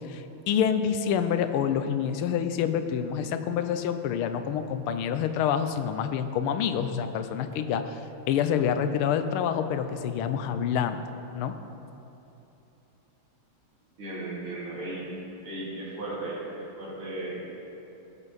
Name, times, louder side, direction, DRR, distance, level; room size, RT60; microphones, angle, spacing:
voice 1, 0.1-8.0 8.3-11.0 11.3-11.6, left 8 dB, 85° left, 9 dB, 1.5 m, -27 dB
voice 2, 14.0-15.1 15.4-17.5, right 2 dB, 85° right, -7 dB, 3.7 m, -36 dB
16.5 x 7.2 x 4.1 m, 3.0 s
omnidirectional pair, 2.3 m